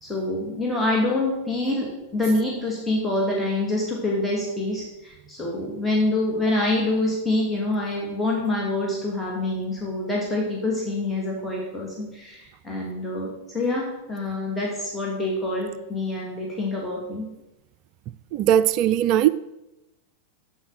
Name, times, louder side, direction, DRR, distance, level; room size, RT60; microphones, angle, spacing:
voice 1, 0.0-17.3, left 2 dB, 10° left, 2.5 m, -26 dB
voice 2, 18.3-19.3, right 11 dB, 40° right, 0.4 m, -19 dB
8.8 x 7.9 x 6.6 m
figure-of-eight pair, 90°, 0 cm